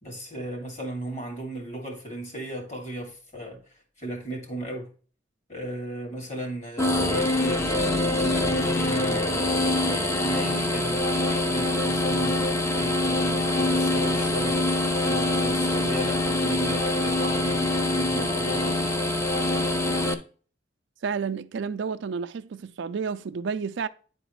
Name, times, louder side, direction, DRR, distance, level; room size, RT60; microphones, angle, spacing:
voice 1, 0.0-4.9 5.5-7.8 8.2-14.6 15.0-18.9, right 1 dB, 40° left, 2.6 m, -36 dB
sound 1, 6.8-20.1, left 2 dB, 15° left, 0.6 m, -24 dB
voice 2, 21.0-23.9, right 5 dB, 75° right, 0.4 m, -30 dB
10.0 x 4.0 x 3.0 m
head